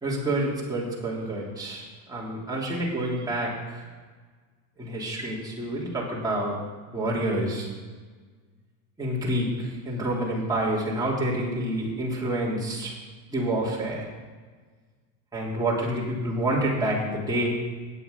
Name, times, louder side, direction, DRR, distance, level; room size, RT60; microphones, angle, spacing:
voice 1, 0.0-3.8 4.8-6.6 6.9-7.7 9.0-12.9 13.3-14.1 15.3-17.5, right 1 dB, 10° right, -6 dB, 3.2 m, -28 dB
9.2 x 8.8 x 8.2 m, 1.4 s
supercardioid pair, 145°, 48 cm